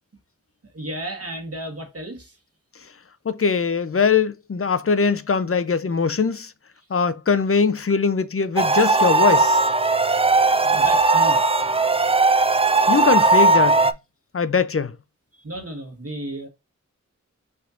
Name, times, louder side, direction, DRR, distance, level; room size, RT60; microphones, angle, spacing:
voice 1, 0.7-2.4 10.6-11.5 15.4-16.5, right 1 dB, 55° right, 1.4 m, -33 dB
voice 2, 3.2-6.5 6.9-9.6 12.9-13.8 14.3-14.9, left 5 dB, 50° left, 0.5 m, -21 dB
sound 1, 8.6-13.9, right 3 dB, 20° right, 0.4 m, -18 dB
5.5 x 3.5 x 2.5 m
wide cardioid pair, 50°, 29 cm